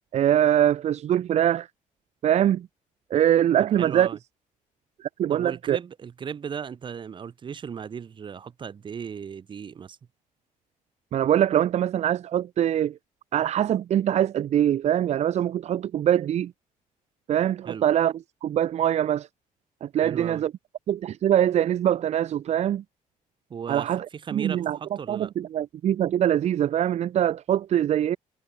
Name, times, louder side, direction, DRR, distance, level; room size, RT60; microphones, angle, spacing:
voice 1, 0.1-1.7 2.2-2.7 3.1-4.1 5.0-5.8 11.1-13.0 13.3-16.5 17.3-18.1 18.4-19.3 19.8-20.5 20.9-22.8 23.7-24.1 24.3-24.8 25.1-28.2, right 10 dB, 55° right, 1.6 m, -23 dB
voice 2, 3.8-4.2 5.3-10.0 17.7-17.8 20.0-20.4 23.5-25.3, right 7 dB, 35° right, 5.5 m, -36 dB
cardioid pair, 160°, 14 cm